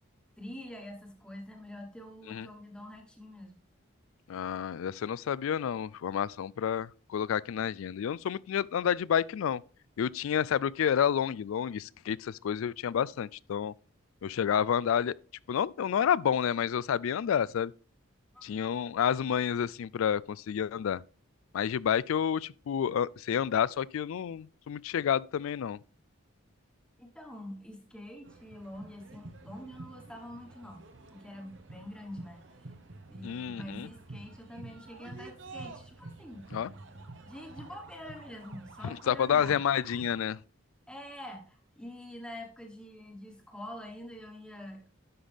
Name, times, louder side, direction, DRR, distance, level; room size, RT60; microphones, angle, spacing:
voice 1, 0.4-3.6 18.3-18.4 27.0-32.4 33.1-36.5 37.2-39.6 40.9-44.8, left 1 dB, 5° left, 1.2 m, -45 dB
voice 2, 4.3-9.6 10.0-13.7 14.2-15.1 15.5-17.7 18.4-21.0 21.5-25.8 33.2-33.9 36.5-36.7 38.8-40.4, left 8 dB, 75° left, 0.3 m, -29 dB
sound 1, 28.2-40.2, right 2 dB, 60° right, 1.0 m, -49 dB
11.0 x 5.7 x 3.4 m
head